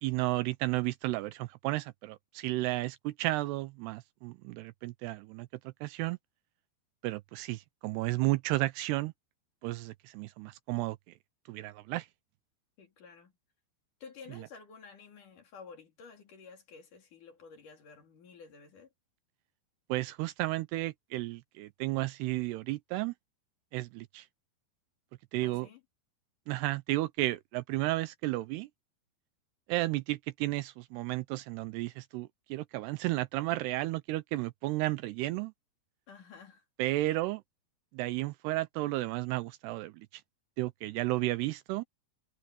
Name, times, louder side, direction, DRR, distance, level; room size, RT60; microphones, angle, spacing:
voice 1, 0.0-5.5 5.8-6.2 7.0-9.1 9.6-11.0 11.5-12.1 14.4-14.5 19.9-23.1 23.7-24.3 25.3-25.7 26.5-28.7 29.7-35.5 36.8-37.4 37.9-40.2 40.6-41.8, right 18 dB, 80° right, 2.5 m, -33 dB
voice 2, 12.8-13.3 14.0-18.9 25.4-25.8 36.1-36.6, left 5 dB, 50° left, 4.0 m, -52 dB
omnidirectional pair, 5.0 m